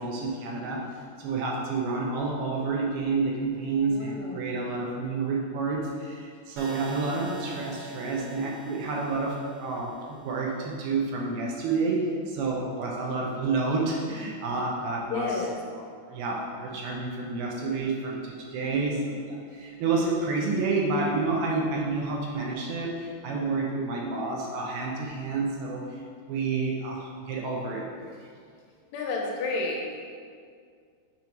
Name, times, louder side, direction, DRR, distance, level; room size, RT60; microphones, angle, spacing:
voice 1, 0.0-15.4 15.7-26.0 26.3-27.9, right 3 dB, 80° right, -1 dB, 2.5 m, -29 dB
voice 2, 3.9-4.4 15.1-15.6 28.9-29.8, left 3 dB, 90° left, -2 dB, 2.9 m, -30 dB
sound 1, 6.6-10.6, right 1 dB, 60° right, 2.1 m, -45 dB
6.9 x 3.1 x 5.1 m, 2.2 s
omnidirectional pair, 4.8 m